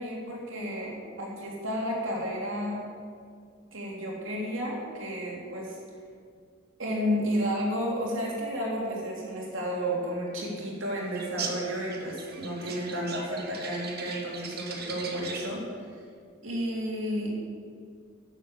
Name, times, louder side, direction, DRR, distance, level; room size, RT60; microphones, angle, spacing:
voice 1, 0.0-2.8 3.7-5.8 6.8-15.6 16.4-17.4, equal, 75° right, -3 dB, 3.1 m, -32 dB
sound 1, 11.1-15.6, right 5 dB, 55° right, 1.4 m, -40 dB
11.0 x 7.5 x 7.2 m, 2.1 s
head